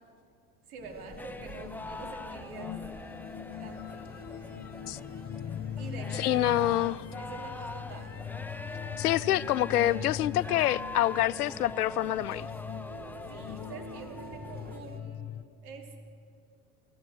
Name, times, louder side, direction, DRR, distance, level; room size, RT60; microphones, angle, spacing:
voice 1, 0.7-2.8 3.6-4.0 4.3-4.5 5.8-6.6 7.2-8.2 13.3-15.3 15.6-16.0, right 4 dB, 80° right, 3.2 m, -46 dB
sound 1, 0.8-15.4, left 9 dB, 35° left, 1.0 m, -41 dB
sound 2, 0.8-15.0, right 2 dB, 20° right, 2.4 m, -50 dB
sound 3, 1.2-14.8, left 2 dB, 5° left, 0.5 m, -44 dB
voice 2, 6.2-6.9 9.0-12.5, left 13 dB, 90° left, 0.6 m, -26 dB
24.5 x 14.0 x 7.9 m
hypercardioid pair, 85°, 44 cm